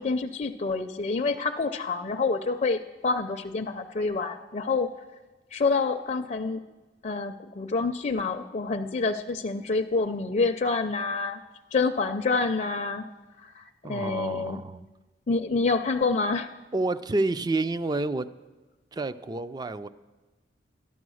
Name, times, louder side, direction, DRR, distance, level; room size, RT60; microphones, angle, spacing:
voice 1, 0.0-4.9 5.5-6.6 7.0-11.4 11.7-13.1 13.4-14.6 15.3-16.5, left 3 dB, 40° left, 3 dB, 0.5 m, -27 dB
voice 2, 13.8-14.9 16.7-18.3 18.9-19.9, right 2 dB, 20° right, 14 dB, 0.3 m, -29 dB
13.0 x 11.0 x 6.3 m, 1.2 s
head